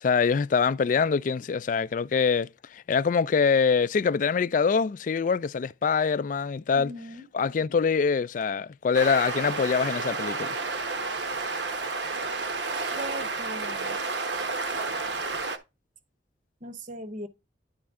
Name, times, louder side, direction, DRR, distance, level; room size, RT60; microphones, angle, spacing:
voice 1, 0.0-6.9 7.3-10.6, left 5 dB, 45° left, 0.3 m, -24 dB
voice 2, 6.7-7.2 12.9-14.0 16.6-17.3, equal, 45° right, 0.9 m, -39 dB
sound 1, 8.9-15.6, right 3 dB, 75° right, 1.1 m, -31 dB
10.5 x 4.3 x 3.6 m
head